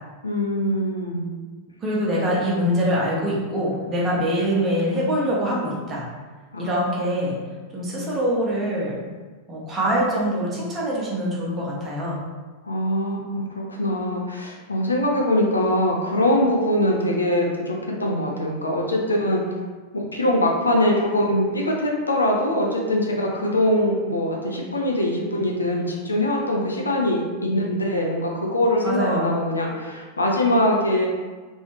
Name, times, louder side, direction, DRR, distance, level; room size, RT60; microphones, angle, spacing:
voice 1, 0.2-1.3 2.1-2.5 4.2-4.3 6.5-6.9 12.6-19.4 20.1-31.1, left 1 dB, 80° left, -1 dB, 0.5 m, -23 dB
voice 2, 1.8-6.0 6.6-7.4 7.7-9.0 9.5-12.2 28.8-29.3, equal, 25° right, -5 dB, 1.0 m, -24 dB
3.2 x 2.6 x 3.1 m, 1.4 s
figure-of-eight pair, 90°, 0 cm